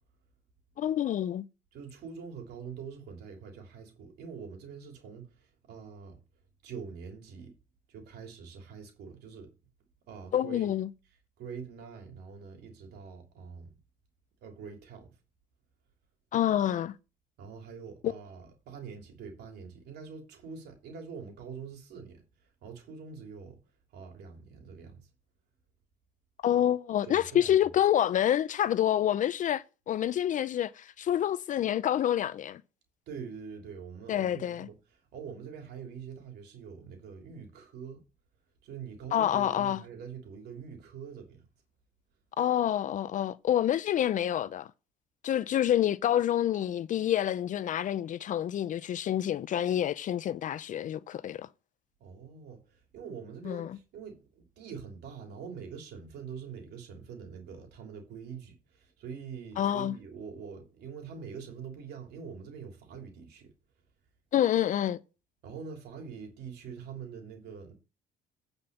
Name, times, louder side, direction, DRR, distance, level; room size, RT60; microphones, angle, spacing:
voice 1, 0.8-1.4 10.3-10.9 16.3-16.9 18.0-18.1 26.4-32.6 34.1-34.7 39.1-39.8 42.4-44.7 45.2-51.5 53.4-53.8 59.6-59.9 64.3-65.0, left 11 dB, 50° left, 0.5 m, -27 dB
voice 2, 1.7-6.2 6.6-7.5 7.9-9.5 10.1-10.7 11.0-13.8 14.4-15.2 17.4-23.6 23.9-25.1 27.0-27.7 33.1-38.0 38.6-41.4 52.0-63.5 65.4-67.7, right 6 dB, 75° right, 3.2 m, -44 dB
9.0 x 5.3 x 6.8 m
cardioid pair, 110°, 17 cm